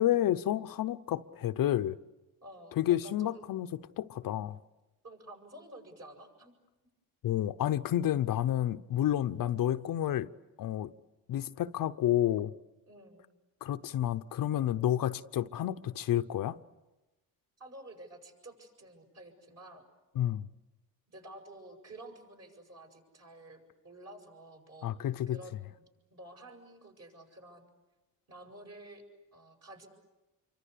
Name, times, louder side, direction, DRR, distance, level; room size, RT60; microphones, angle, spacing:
voice 1, 0.0-2.0 2.8-4.6 7.2-10.3 10.6-10.9 11.3-12.5 13.6-16.6 20.1-20.5 24.8-25.4, left 12 dB, 65° left, 0.9 m, -30 dB
voice 2, 2.4-3.5 5.0-6.5 9.4-9.7 12.9-13.3 17.6-19.8 21.1-24.9 25.3-27.6 28.3-29.0 29.3-29.9, right 1 dB, 45° right, 7.9 m, -51 dB
28.0 x 24.5 x 8.4 m
cardioid pair, 95°, 36 cm